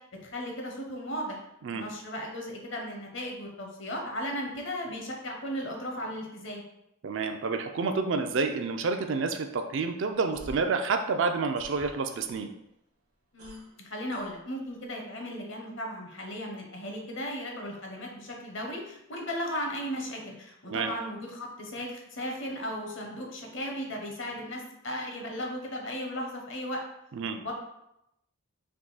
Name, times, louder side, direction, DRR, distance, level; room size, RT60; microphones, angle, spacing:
voice 1, 0.3-1.4 1.7-6.6 13.3-26.8 27.3-27.5, equal, 55° left, 0 dB, 0.8 m, -36 dB
voice 2, 7.0-12.5 20.7-20.9 27.1-27.4, right 4 dB, 55° right, 6 dB, 0.4 m, -29 dB
sound 1, 10.1-12.7 13.0-14.9, right 1 dB, 85° right, 1.1 m, -49 dB
3.6 x 2.7 x 3.9 m, 0.83 s
head